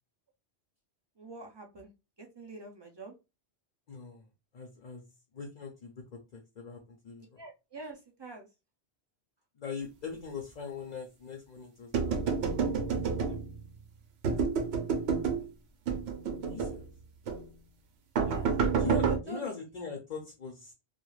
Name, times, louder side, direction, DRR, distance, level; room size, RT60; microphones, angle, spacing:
voice 1, 1.2-1.9 2.2-3.1 7.4-8.5 13.1-13.4 18.2-18.5 19.0-19.5, right 3 dB, 45° right, 2 dB, 0.3 m, -44 dB
voice 2, 3.9-4.2 4.5-5.0 5.3-6.0 6.3-7.4 9.6-12.2 16.4-16.9 18.8-20.7, left 5 dB, 50° left, 1 dB, 0.6 m, -41 dB
sound 1, 11.9-13.7 14.2-15.5 15.9-16.8 17.3-17.5 18.2-19.2, right 5 dB, 75° right, 0.9 m, -29 dB
2.3 x 2.3 x 3.1 m, 0.26 s
omnidirectional pair, 1.1 m